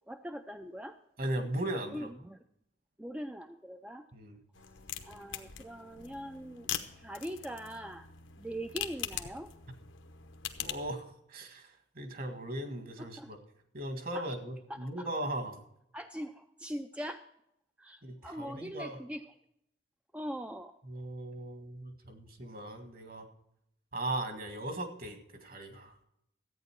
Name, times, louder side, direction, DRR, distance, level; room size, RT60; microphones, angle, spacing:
voice 1, 0.1-1.0 1.9-2.4 3.0-4.0 5.1-6.7 7.0-8.1 8.4-9.5 13.0-13.3 14.1-14.3 14.7-15.1 15.9-17.2 17.8-19.3 20.1-20.7, equal, 5° right, 7 dB, 0.4 m, -42 dB
voice 2, 1.2-2.1 4.1-4.4 10.6-13.4 13.7-15.6 18.0-19.0 20.8-23.3 23.9-25.9, right 1 dB, 50° right, 6 dB, 1.8 m, -38 dB
sound 1, 4.5-11.0, left 10 dB, 90° left, 1.0 m, -42 dB
13.5 x 9.1 x 4.5 m, 0.78 s
head